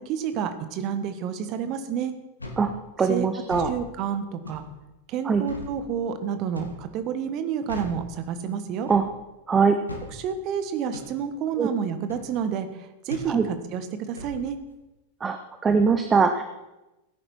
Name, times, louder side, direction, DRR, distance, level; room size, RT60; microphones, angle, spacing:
voice 1, 0.1-2.1 3.1-3.3 3.6-4.6 5.1-8.9 10.1-14.6, right 7 dB, 40° right, 9 dB, 1.5 m, -29 dB
sound 1, 2.4-2.7 3.4-3.7 4.4-4.7 5.5-5.7 6.5-6.8 7.7-8.0 8.9-9.1 9.9-10.1 10.9-11.1 12.1-12.3 13.1-13.3 14.2-14.4, left 2 dB, 80° left, 2.1 m, -37 dB
voice 2, 3.0-3.7 5.3-5.4 8.9-9.0 9.5-9.7 11.6-11.7 13.3-13.4 15.2-15.4 15.6-16.4, right 5 dB, 20° right, 7 dB, 0.9 m, -21 dB
17.0 x 9.9 x 4.5 m, 1.0 s
figure-of-eight pair, 90°, 0 cm